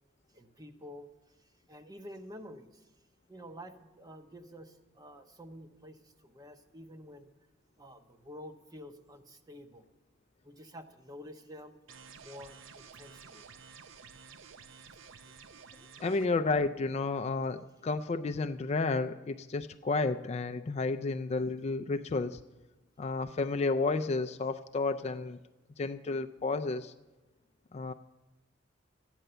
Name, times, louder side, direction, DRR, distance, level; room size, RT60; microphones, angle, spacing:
voice 1, 0.3-2.9 3.3-7.3 7.8-9.9 10.4-11.8 12.2-13.4 14.8-14.9, equal, 20° right, 8 dB, 0.8 m, -49 dB
sound 1, 11.9-16.3, right 6 dB, 80° right, 0.6 m, -52 dB
voice 2, 16.0-22.4 23.0-25.4 25.8-26.9 27.7-27.9, left 3 dB, 35° left, 8 dB, 0.3 m, -31 dB
13.5 x 9.0 x 6.7 m, 1.1 s
head